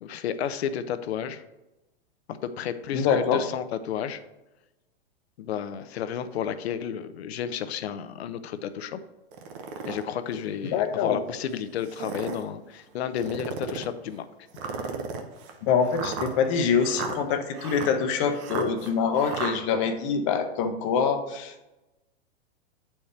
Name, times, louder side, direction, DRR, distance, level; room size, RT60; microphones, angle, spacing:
voice 1, 0.0-1.4 2.3-4.2 5.4-9.0 9.8-14.3, left 8 dB, 75° left, 11 dB, 0.6 m, -32 dB
voice 2, 2.9-3.4 10.6-11.2 15.6-21.7, left 6 dB, 30° left, 7 dB, 0.6 m, -25 dB
sound 1, 9.3-10.0 10.7-10.8 11.8-12.5 13.2-13.9 14.6-19.5, right 5 dB, 30° right, 0.6 m, -35 dB
8.5 x 4.3 x 3.3 m, 1.0 s
supercardioid pair, 155°, 32 cm